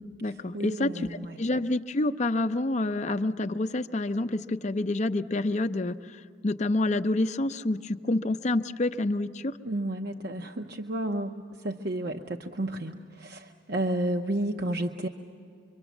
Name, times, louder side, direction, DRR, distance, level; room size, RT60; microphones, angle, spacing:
voice 1, 0.0-6.0 6.4-9.6, left 2 dB, 40° left, 10 dB, 0.5 m, -28 dB
voice 2, 0.5-1.4 9.6-15.1, right 1 dB, 55° right, 4 dB, 0.8 m, -31 dB
26.0 x 23.5 x 7.2 m, 2.5 s
head